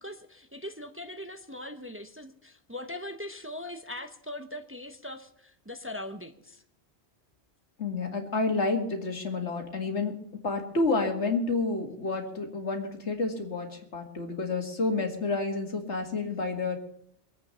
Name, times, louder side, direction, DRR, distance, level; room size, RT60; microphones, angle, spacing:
voice 1, 0.0-6.6, left 1 dB, 15° right, 0.7 m, -40 dB
voice 2, 7.8-16.8, left 3 dB, 90° left, 2.4 m, -30 dB
23.5 x 8.4 x 5.6 m
omnidirectional pair, 1.1 m